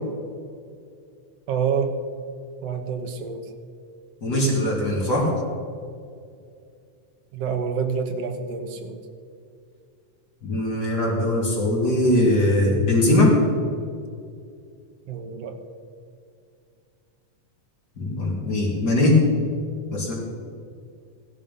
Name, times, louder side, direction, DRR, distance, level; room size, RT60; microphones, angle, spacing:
voice 1, 1.5-2.0 2.6-3.5 7.3-9.0 15.1-15.6, right 6 dB, 65° right, 6 dB, 2.0 m, -27 dB
voice 2, 4.2-5.3 10.4-13.4 18.0-19.2 19.9-20.1, left 1 dB, 35° left, -4 dB, 3.4 m, -20 dB
15.5 x 11.5 x 5.5 m, 2.4 s
omnidirectional pair, 3.3 m